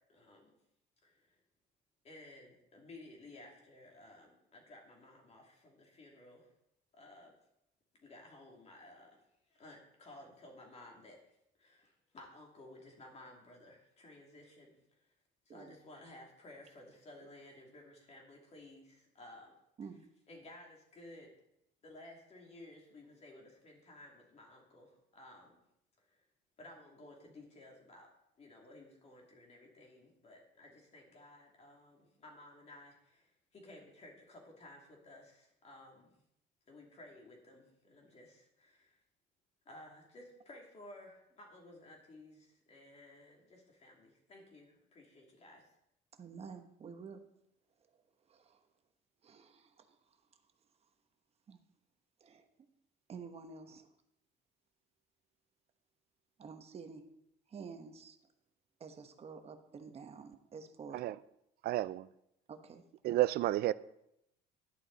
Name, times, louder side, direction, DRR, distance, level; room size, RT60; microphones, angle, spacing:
voice 1, 0.1-0.5 1.0-1.4 2.0-6.5 6.9-7.3 8.0-9.2 9.5-11.2 11.6-15.1 15.4-19.5 20.3-21.3 21.8-25.6 26.0-26.2 26.6-28.1 28.4-36.2 36.7-39.0 39.6-45.7, left 1 dB, 35° left, 2.9 m, -56 dB
voice 2, 46.1-47.2 48.3-48.6 49.2-50.0 51.5-51.6 52.2-52.5 53.1-53.9 56.4-57.1 57.5-58.2 58.8-61.0 62.5-62.8, right 5 dB, 30° right, 1.1 m, -49 dB
voice 3, 61.6-62.1 63.0-63.7, right 15 dB, 55° right, 0.4 m, -31 dB
11.0 x 11.0 x 4.1 m
cardioid pair, 150°, 20 cm